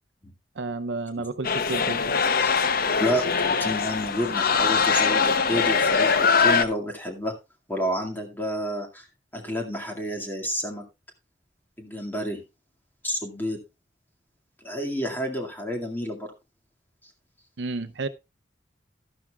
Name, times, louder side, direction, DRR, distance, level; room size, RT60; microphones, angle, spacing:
voice 1, 0.6-2.2 17.6-18.1, right 3 dB, 70° right, 12 dB, 0.6 m, -31 dB
sound 1, 1.4-6.6, left 5 dB, 55° left, 0.7 m, -22 dB
voice 2, 3.0-7.4 7.7-9.0 9.3-10.8 11.8-12.4 13.0-13.6 14.6-16.3, equal, 10° left, 1 dB, 2.1 m, -30 dB
12.5 x 12.0 x 2.4 m, 0.24 s
head